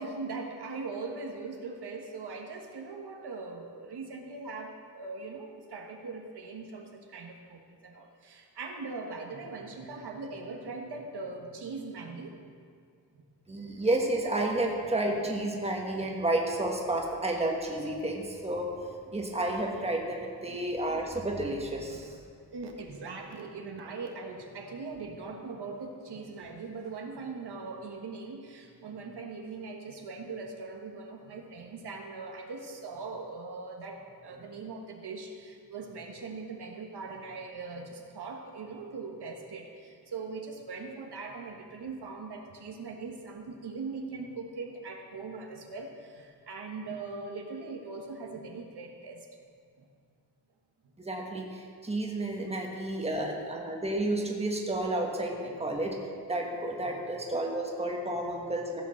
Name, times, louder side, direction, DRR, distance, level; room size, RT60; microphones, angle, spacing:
voice 1, 0.0-12.4 13.5-13.6 20.5-20.7 21.9-22.0 22.5-49.3 49.8-49.9 51.2-51.3 52.6-52.9 54.1-54.2 55.5-55.6 56.8-57.1 58.3-58.5, right 4 dB, 80° right, 2 dB, 1.4 m, -41 dB
voice 2, 13.5-18.7 19.1-22.2 51.0-56.0 56.3-58.8, right 1 dB, 15° right, 0 dB, 1.4 m, -31 dB
15.5 x 6.6 x 6.4 m, 2.1 s
wide cardioid pair, 165°, 40 cm